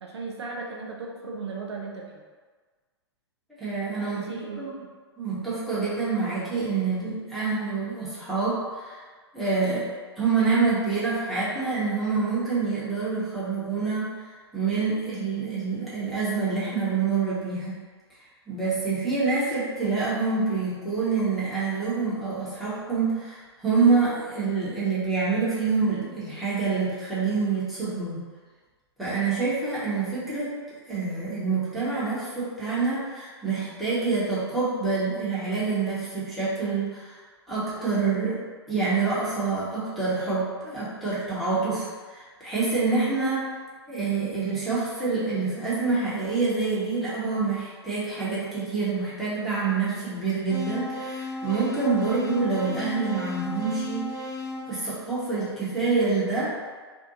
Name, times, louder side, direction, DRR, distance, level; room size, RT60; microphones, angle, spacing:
voice 1, 0.0-2.2 4.0-4.9, right 4 dB, 75° right, -1 dB, 0.5 m, -36 dB
voice 2, 3.6-4.2 4.6-4.8 5.2-9.0 9.3-9.9 10.2-17.8 18.5-28.2 29.0-30.6 30.9-37.2 37.5-38.4 38.7-43.5 43.9-54.1 54.7-56.5, right 4 dB, ahead, -12 dB, 0.9 m, -26 dB
sound 1, 50.5-55.6, left 2 dB, 60° left, 0.8 m, -35 dB
2.6 x 2.1 x 2.7 m, 1.5 s
figure-of-eight pair, 115°, 14 cm